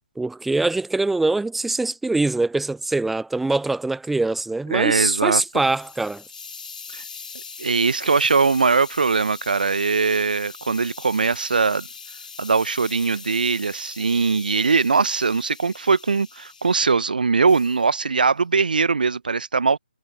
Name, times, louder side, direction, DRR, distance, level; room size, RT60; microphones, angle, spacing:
voice 1, 0.2-6.2, right 2 dB, 5° right, 0.4 m, -23 dB
voice 2, 4.7-5.4 6.9-7.0 7.6-11.9 12.4-19.8, right 4 dB, 60° right, 1.2 m, -21 dB
Hiss, 5.2-16.9 17.5-17.8, left 5 dB, 55° left, 4.6 m, -41 dB
figure-of-eight pair, 140°, 5 cm